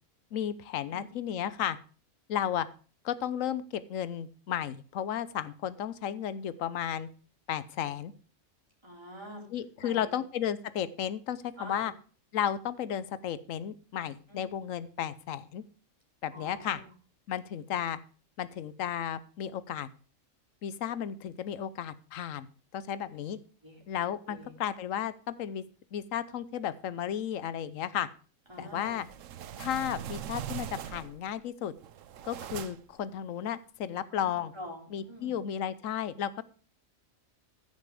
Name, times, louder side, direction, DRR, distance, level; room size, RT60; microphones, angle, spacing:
voice 1, 0.3-1.8 2.3-2.7 3.0-7.1 7.5-8.1 9.5-11.9 12.3-15.6 16.2-16.8 17.3-18.0 18.4-19.9 20.6-22.5 22.7-23.4 23.9-25.6 25.9-28.1 28.6-29.1 29.6-31.7 32.2-34.5 34.9-36.4, left 10 dB, 90° left, 15 dB, 1.1 m, -33 dB
voice 2, 8.8-9.5 9.8-10.2 11.6-11.9 14.3-14.5 16.3-16.9 23.6-23.8 24.3-24.5 28.5-29.0 34.1-35.3, equal, 20° right, -1 dB, 4.0 m, -46 dB
sound 1, 28.8-31.3 31.8-33.0, right 9 dB, 80° right, 1.1 m, -41 dB
15.0 x 6.7 x 4.9 m, 0.39 s
omnidirectional pair, 1.3 m